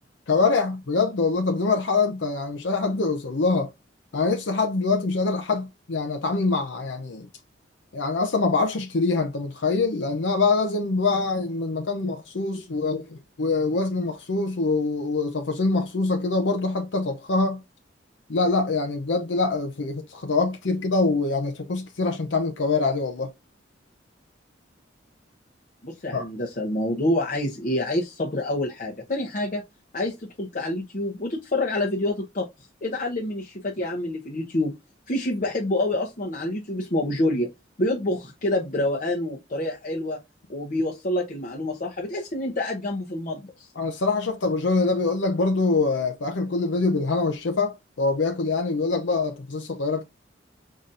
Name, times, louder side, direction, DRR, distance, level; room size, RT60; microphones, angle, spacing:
voice 1, 0.3-3.7 4.1-7.3 7.9-17.6 18.3-23.3 26.1-26.2 43.8-50.0, left 3 dB, 70° left, 0.7 m, -24 dB
voice 2, 25.8-29.6 29.9-32.5 32.8-34.7 35.1-37.5 37.8-40.2 40.5-43.7, left 1 dB, 45° left, 0.9 m, -27 dB
4.9 x 4.1 x 2.5 m
head